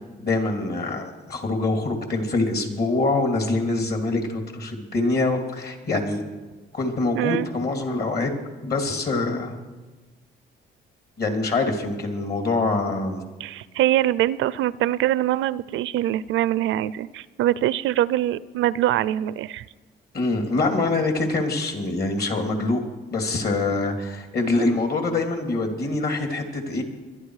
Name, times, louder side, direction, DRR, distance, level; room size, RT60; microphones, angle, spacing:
voice 1, 0.2-6.2 6.7-8.3 8.6-9.5 11.2-13.2 20.1-22.8 23.1-26.8, left 3 dB, 55° left, 4 dB, 2.9 m, -24 dB
voice 2, 7.1-7.5 13.4-19.6, right 13 dB, 80° right, 19 dB, 0.5 m, -23 dB
22.0 x 11.5 x 4.8 m, 1.2 s
cardioid pair, 90°, 20 cm